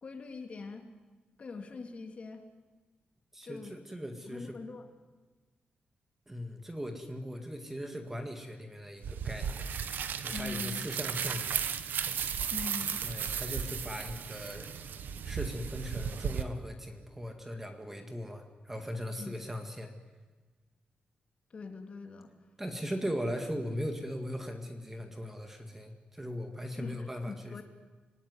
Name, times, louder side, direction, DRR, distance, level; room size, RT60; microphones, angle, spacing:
voice 1, 0.0-0.8 1.4-2.4 3.4-3.7 4.3-4.9 10.3-10.9 12.5-13.0 19.2-19.4 21.5-22.3 26.8-27.6, left 4 dB, 40° left, 5 dB, 2.8 m, -42 dB
voice 2, 3.3-4.6 6.3-9.7 10.2-11.7 13.0-14.7 15.2-19.9 22.6-27.6, equal, 10° right, 6 dB, 1.9 m, -39 dB
sound 1, 9.0-16.4, right 7 dB, 80° right, 1.3 m, -35 dB
26.5 x 18.5 x 9.7 m, 1.3 s
wide cardioid pair, 165°, 3 cm